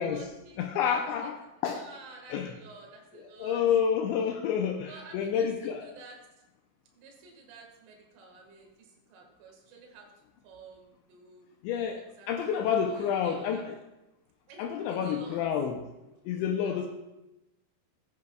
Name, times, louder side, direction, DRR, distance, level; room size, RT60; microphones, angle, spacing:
voice 1, 0.0-3.8 4.9-6.2 6.9-10.1 10.4-11.5 12.0-13.7 14.5-14.6 14.9-15.4 16.6-16.7, right 3 dB, 75° right, 0 dB, 4.1 m, -51 dB
voice 2, 0.6-1.8 2.3-2.5 3.4-5.9 11.6-13.8 14.6-15.8 16.3-16.9, left 7 dB, 90° left, 4 dB, 2.5 m, -29 dB
15.5 x 9.6 x 2.3 m, 0.97 s
omnidirectional pair, 5.8 m